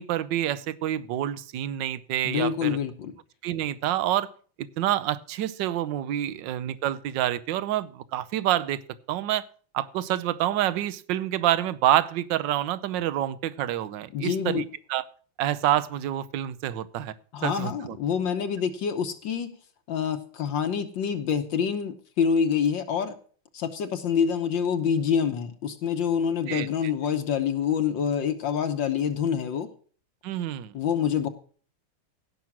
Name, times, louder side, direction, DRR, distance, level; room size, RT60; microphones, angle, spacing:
voice 1, 0.0-2.8 3.4-4.3 4.6-8.8 9.1-9.4 9.7-14.6 14.9-15.0 15.4-17.1 17.4-18.0 26.5-26.7 30.2-30.7, right 12 dB, 65° right, 16 dB, 1.3 m, -27 dB
voice 2, 2.2-3.1 14.1-14.7 17.3-19.5 19.9-23.1 23.5-29.7 30.7-31.3, left 7 dB, 65° left, 7 dB, 1.6 m, -26 dB
16.5 x 6.1 x 6.0 m, 0.44 s
omnidirectional pair, 2.3 m